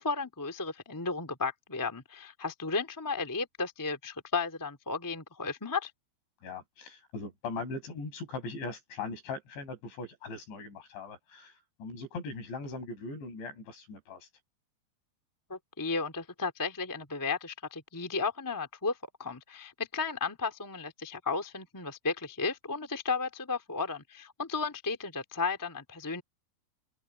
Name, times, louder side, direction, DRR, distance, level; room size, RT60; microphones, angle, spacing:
voice 1, 0.0-5.9 15.5-26.2, left 4 dB, 10° left, 1.3 m, -34 dB
voice 2, 6.4-11.5 11.8-14.3, left 3 dB, 75° left, 8.2 m, -40 dB
open air
omnidirectional pair, 5.3 m